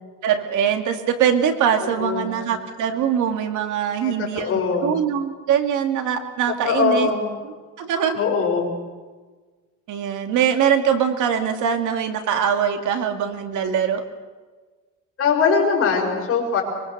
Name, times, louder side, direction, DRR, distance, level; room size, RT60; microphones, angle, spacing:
voice 1, 0.2-4.5 4.8-7.1 7.8-8.2 9.9-14.0, right 8 dB, 70° right, 6 dB, 2.4 m, -22 dB
voice 2, 1.8-2.4 4.0-4.9 6.6-7.3 8.1-8.7 15.2-16.6, left 5 dB, 45° left, 0 dB, 6.0 m, -21 dB
24.0 x 23.0 x 6.7 m, 1.4 s
cardioid pair, 155°, 31 cm